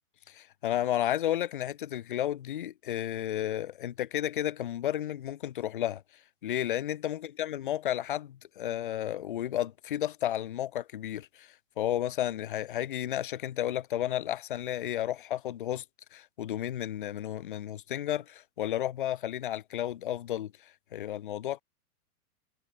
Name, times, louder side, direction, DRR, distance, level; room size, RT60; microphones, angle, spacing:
voice 1, 0.3-6.0 6.4-15.8 16.1-21.6, left 12 dB, 35° left, 0.4 m, -32 dB
hypercardioid pair, 165°, 46 cm